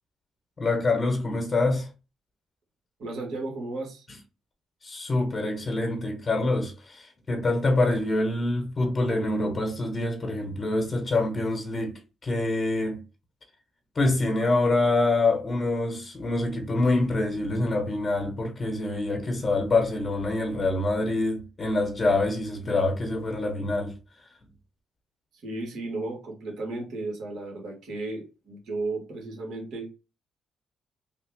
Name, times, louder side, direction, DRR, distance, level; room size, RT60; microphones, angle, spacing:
voice 1, 0.6-1.9 4.8-13.0 13.9-24.0, left 2 dB, 35° left, 1.1 m, -26 dB
voice 2, 3.0-4.1 25.3-29.9, right 2 dB, 75° right, 1.7 m, -34 dB
3.4 x 2.3 x 3.5 m
cardioid pair, 90°, 0 cm